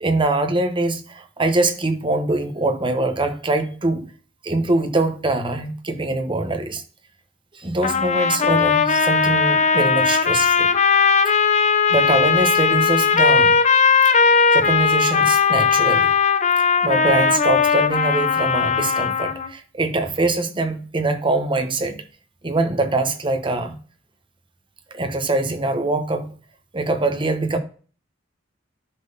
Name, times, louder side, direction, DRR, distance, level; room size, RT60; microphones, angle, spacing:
voice 1, 0.0-4.1 4.4-6.8 7.5-10.7 11.9-13.6 14.0-14.1 14.5-16.1 16.8-22.0 22.4-23.8 24.9-26.3 26.7-27.6, right 2 dB, 25° right, 1.0 m, -23 dB
sound 1, 7.8-19.5, left 5 dB, 35° left, 0.6 m, -18 dB
10.0 x 4.0 x 5.3 m
head